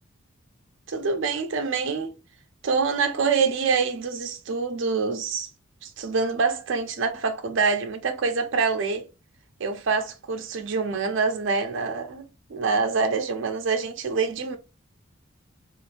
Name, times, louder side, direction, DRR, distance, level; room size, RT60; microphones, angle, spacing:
voice 1, 0.9-2.1 2.6-5.5 5.8-9.1 9.6-14.6, right 4 dB, 60° right, 0.5 m, -26 dB
2.9 x 2.5 x 2.5 m
head